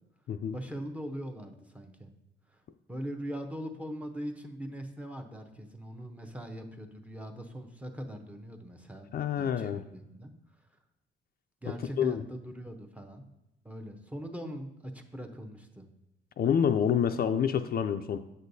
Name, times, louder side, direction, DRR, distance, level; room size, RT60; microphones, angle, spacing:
voice 1, 0.5-2.1 2.5-2.6 2.9-10.3 11.6-13.3 13.6-15.9, equal, 5° right, 5 dB, 0.7 m, -41 dB
voice 2, 9.1-9.8 12.0-12.2 16.4-18.2, left 8 dB, 50° left, 8 dB, 0.4 m, -27 dB
7.9 x 6.3 x 2.7 m, 0.90 s
cardioid pair, 90°, 20 cm